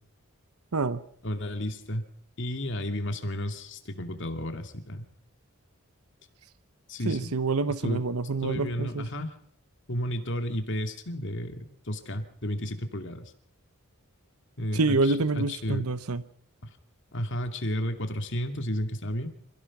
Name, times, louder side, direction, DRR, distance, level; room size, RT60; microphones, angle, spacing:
voice 1, 1.2-2.1 2.4-5.1 6.9-7.3 7.7-8.0 8.4-9.3 9.9-13.3 14.6-15.9 16.6-16.7 17.1-19.3, equal, 55° left, 6 dB, 2.4 m, -32 dB
voice 2, 7.0-9.1 14.7-16.2, right 3 dB, 85° right, 14 dB, 0.8 m, -27 dB
27.0 x 16.5 x 6.0 m, 0.62 s
head